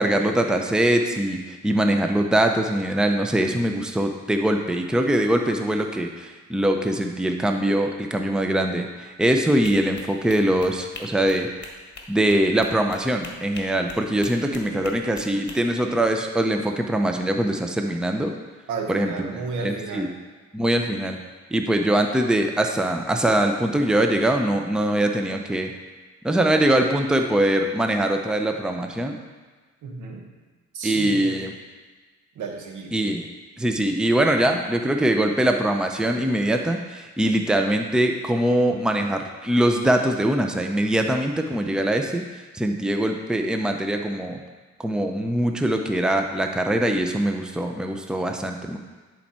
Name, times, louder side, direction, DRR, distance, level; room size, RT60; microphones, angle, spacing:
voice 1, 0.0-11.5 12.1-18.3 18.9-20.1 20.5-21.2 21.5-25.7 26.2-29.2 30.8-31.5 32.9-33.3 33.6-42.2 42.5-44.4 44.8-48.8, right 1 dB, 5° right, 4 dB, 0.6 m, -22 dB
sound 1, 9.6-15.6, left 3 dB, 35° left, 1.4 m, -42 dB
voice 2, 18.7-20.2 29.8-30.3 30.7-31.5 32.3-33.0, right 4 dB, 80° right, 2 dB, 1.2 m, -33 dB
10.0 x 4.5 x 4.3 m, 1.3 s
cardioid pair, 90°, 30 cm